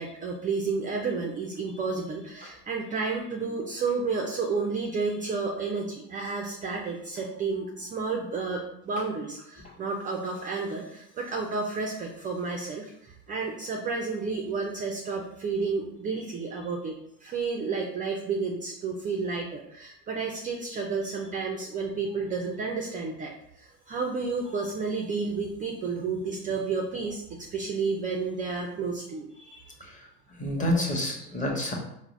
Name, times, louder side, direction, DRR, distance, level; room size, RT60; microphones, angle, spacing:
voice 1, 0.0-16.9 17.2-29.7 31.2-31.3, right 4 dB, 20° right, 1 dB, 0.3 m, -31 dB
voice 2, 30.4-31.7, left 1 dB, 15° left, -1 dB, 0.9 m, -28 dB
4.5 x 2.1 x 3.0 m, 0.76 s
hypercardioid pair, 80°, 47 cm